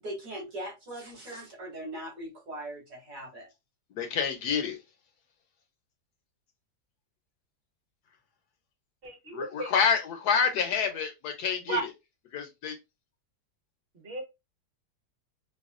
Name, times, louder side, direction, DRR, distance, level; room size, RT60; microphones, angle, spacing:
voice 1, 0.0-3.5, right 1 dB, 85° right, 2.8 m, -40 dB
voice 2, 3.9-4.8 9.3-11.9 12.3-12.7, left 6 dB, 70° left, 1.0 m, -28 dB
voice 3, 9.0-9.7 11.7-11.8 14.0-14.2, right 4 dB, 40° right, 1.2 m, -34 dB
4.7 x 2.2 x 2.4 m
omnidirectional pair, 1.9 m